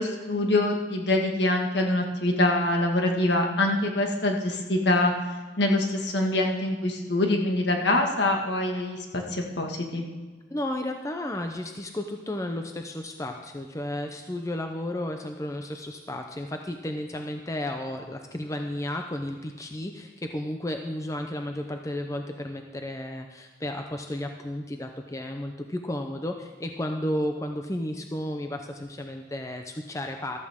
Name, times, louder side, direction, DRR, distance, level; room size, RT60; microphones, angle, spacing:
voice 1, 0.0-5.1 5.6-10.0, left 1 dB, 65° left, 2 dB, 1.7 m, -24 dB
voice 2, 10.5-30.4, left 1 dB, 15° left, 4 dB, 0.6 m, -33 dB
14.5 x 13.5 x 3.7 m, 1.3 s
head